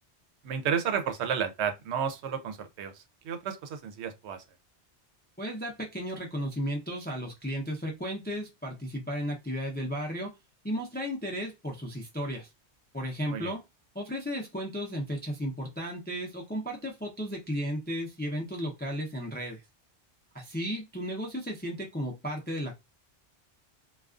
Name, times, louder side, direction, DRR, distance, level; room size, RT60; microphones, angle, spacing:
voice 1, 0.4-4.4 13.3-13.5, right 7 dB, 75° right, 0.8 m, -32 dB
voice 2, 5.4-10.3 10.6-12.5 12.9-13.6 13.9-19.6 20.3-22.7, equal, 15° left, 0.3 m, -34 dB
2.3 x 2.3 x 2.3 m
omnidirectional pair, 1.2 m